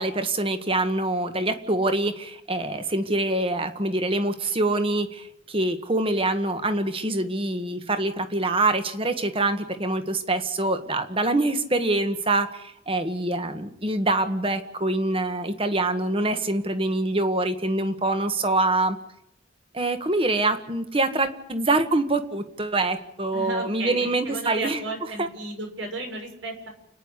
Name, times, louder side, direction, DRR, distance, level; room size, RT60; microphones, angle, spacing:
voice 1, 0.0-19.0 19.7-24.8 25.2-25.3, right 2 dB, 30° right, 9 dB, 1.7 m, -25 dB
voice 2, 23.3-26.7, right 2 dB, 85° right, 4 dB, 6.6 m, -34 dB
29.5 x 10.0 x 9.9 m, 0.76 s
head